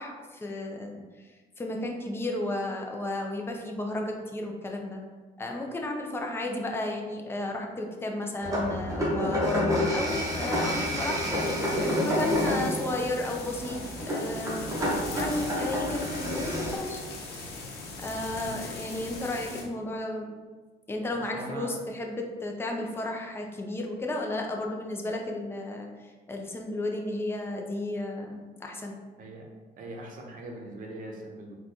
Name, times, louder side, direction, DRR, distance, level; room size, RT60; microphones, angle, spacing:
voice 1, 0.0-5.0 5.4-14.7 15.1-17.0 18.0-20.3 20.9-29.0, left 2 dB, 15° left, 1 dB, 0.5 m, -33 dB
sound 1, 8.4-16.8, equal, 20° right, 0.8 m, -29 dB
sound 2, 10.1-19.6, left 3 dB, 70° left, 0.7 m, -40 dB
voice 2, 21.1-21.8 29.2-29.5 29.8-31.5, right 1 dB, 55° right, 0 dB, 0.7 m, -41 dB
3.8 x 2.3 x 2.9 m, 1.3 s
cardioid pair, 110°, 17 cm